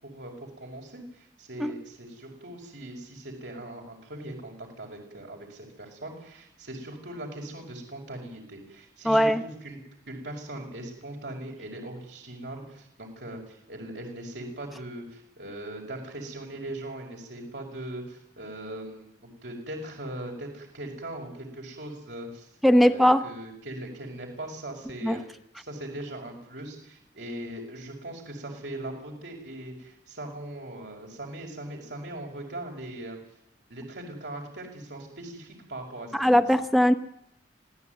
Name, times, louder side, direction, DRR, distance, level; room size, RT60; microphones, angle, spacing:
voice 1, 0.0-9.8 10.1-25.2 25.6-33.2 33.7-36.2, right 1 dB, 80° right, -1 dB, 5.7 m, -40 dB
voice 2, 9.0-9.4 22.6-23.3 25.0-25.2 36.1-36.9, equal, ahead, 7 dB, 0.9 m, -20 dB
26.0 x 17.0 x 9.5 m, 0.77 s
head